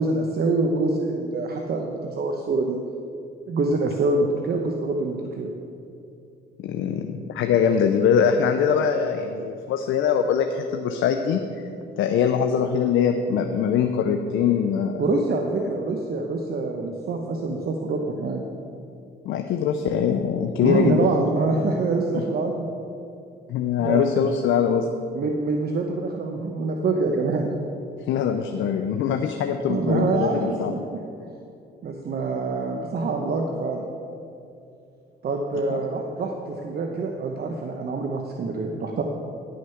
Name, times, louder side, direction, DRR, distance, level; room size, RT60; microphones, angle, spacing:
voice 1, 0.0-2.8 3.5-5.5 15.0-18.4 20.6-22.6 23.8-24.0 25.1-27.5 29.7-31.0 31.8-33.8 35.2-39.0, right 3 dB, 50° right, 2 dB, 0.9 m, -25 dB
voice 2, 6.6-11.4 12.0-15.0 19.3-21.1 23.5-24.9 28.1-30.8 35.7-35.8, left 7 dB, 80° left, 6 dB, 0.6 m, -22 dB
10.5 x 6.5 x 5.8 m, 2.6 s
cardioid pair, 90°, 20 cm